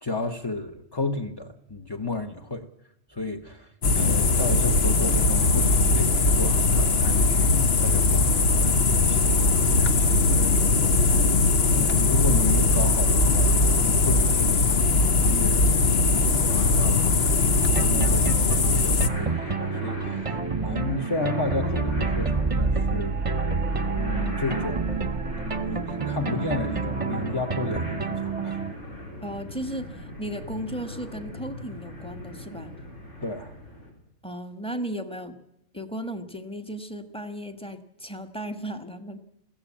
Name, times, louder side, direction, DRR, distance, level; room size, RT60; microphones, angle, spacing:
voice 1, 0.0-2.7 3.1-14.8 15.1-23.1 23.9-25.0 25.3-28.6 33.2-33.5, left 3 dB, 20° left, 4 dB, 1.0 m, -33 dB
sound 1, 3.8-19.1, left 3 dB, 60° left, 1.2 m, -20 dB
sound 2, 17.6-28.7, right 4 dB, 30° right, 1.0 m, -28 dB
sound 3, 19.1-33.9, left 1 dB, 90° left, 4.9 m, -38 dB
voice 2, 29.2-32.7 34.2-35.4 35.7-39.2, right 1 dB, 5° left, 7 dB, 1.4 m, -35 dB
21.5 x 16.0 x 8.5 m, 0.85 s
omnidirectional pair, 1.2 m